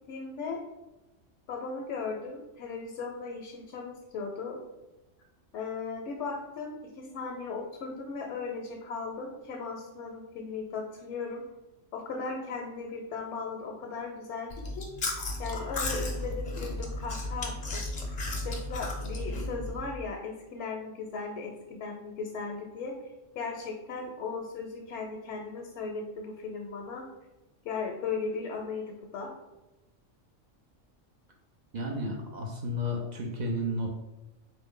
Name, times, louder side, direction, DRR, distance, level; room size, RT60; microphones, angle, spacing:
voice 1, 0.1-0.6 1.5-4.6 5.5-11.4 11.9-14.9 15.4-17.8 18.4-22.9 23.3-27.0 27.6-29.3, left 4 dB, 75° left, 1 dB, 0.9 m, -37 dB
Chewing mastication, 14.5-19.8, left 2 dB, 45° left, 0.5 m, -34 dB
voice 2, 31.7-33.9, left 1 dB, 65° right, 0 dB, 0.4 m, -32 dB
3.7 x 2.6 x 3.6 m, 1.0 s
omnidirectional pair, 1.3 m